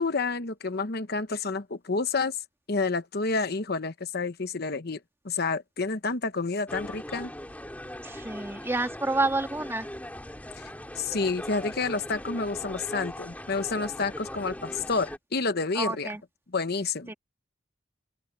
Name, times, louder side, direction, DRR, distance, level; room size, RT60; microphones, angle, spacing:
voice 1, 0.0-2.4 2.7-5.0 5.2-7.3 10.6-10.7 11.0-16.2 16.5-17.1, left 4 dB, 55° left, 1.0 m, -29 dB
sound 1, 6.7-15.2, left 1 dB, 10° left, 3.8 m, -40 dB
voice 2, 8.0-9.9 15.8-16.2 17.1-17.2, right 2 dB, 15° right, 2.0 m, -29 dB
open air
head